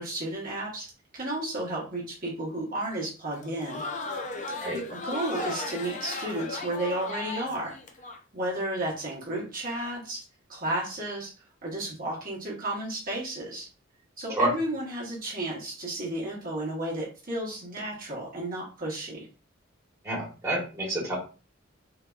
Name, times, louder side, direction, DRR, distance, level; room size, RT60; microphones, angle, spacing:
voice 1, 0.0-3.8 4.9-7.7 8.3-10.2 10.5-11.3 11.6-13.7 14.2-19.3, right 1 dB, 45° right, -4 dB, 1.2 m, -33 dB
Crowd, 3.3-8.2, left 3 dB, 35° left, 0.5 m, -36 dB
voice 2, 20.0-21.2, right 1 dB, 15° right, -5 dB, 1.3 m, -28 dB
3.9 x 2.7 x 2.3 m, 0.34 s
head